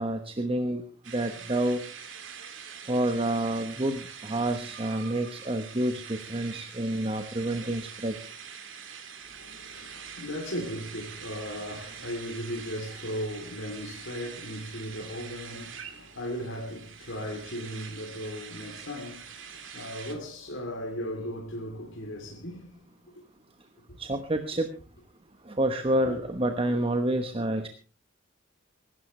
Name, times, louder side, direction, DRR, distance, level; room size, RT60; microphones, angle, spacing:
voice 1, 0.0-1.8 2.9-8.2 24.0-24.7 25.5-27.7, right 1 dB, 30° right, 1.1 m, -28 dB
sound 1, 1.0-20.2, right 7 dB, 85° right, 2.6 m, -44 dB
voice 2, 9.2-22.9 26.0-26.2, equal, 90° left, 3.1 m, -37 dB
24.5 x 12.5 x 3.2 m
head